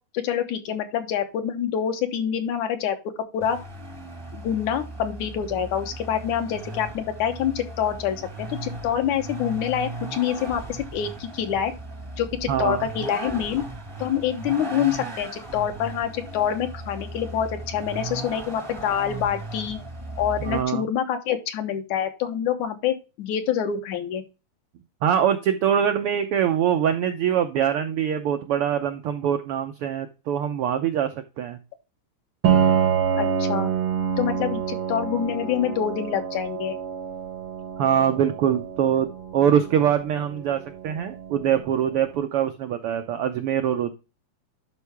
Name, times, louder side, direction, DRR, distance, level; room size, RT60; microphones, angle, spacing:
voice 1, 0.1-3.0 3.3-3.6 4.3-11.7 12.2-13.7 14.0-19.8 20.2-24.2 33.2-33.7 34.2-36.8, left 9 dB, 75° left, 7 dB, 2.5 m, -26 dB
Vehicle, 3.4-20.6, right 2 dB, 20° right, 0.6 m, -37 dB
voice 2, 12.5-12.9 20.5-20.9 25.0-31.6 37.8-43.9, right 9 dB, 85° right, 7 dB, 1.2 m, -23 dB
Piano, 32.4-42.0, right 7 dB, 65° right, 1.1 m, -27 dB
11.5 x 4.7 x 3.3 m, 0.29 s
omnidirectional pair, 3.5 m